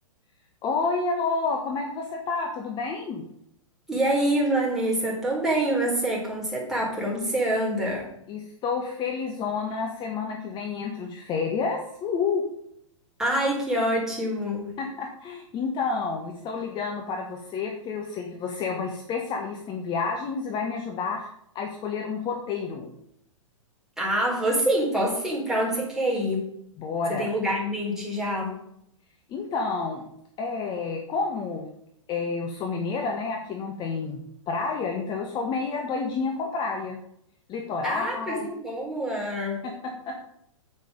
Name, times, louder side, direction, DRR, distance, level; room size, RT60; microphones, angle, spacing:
voice 1, 0.6-3.2 8.3-12.4 14.8-21.3 21.5-22.9 26.8-27.3 29.3-30.0 30.4-31.7 32.1-37.0 37.5-38.5 39.8-40.2, left 4 dB, 25° left, 2 dB, 1.5 m, -29 dB
voice 2, 3.9-8.1 13.2-14.8 24.0-26.5 27.1-28.5 37.8-39.7, right 1 dB, 5° right, -4 dB, 4.2 m, -26 dB
8.8 x 8.3 x 5.2 m, 0.73 s
figure-of-eight pair, 110°, 17 cm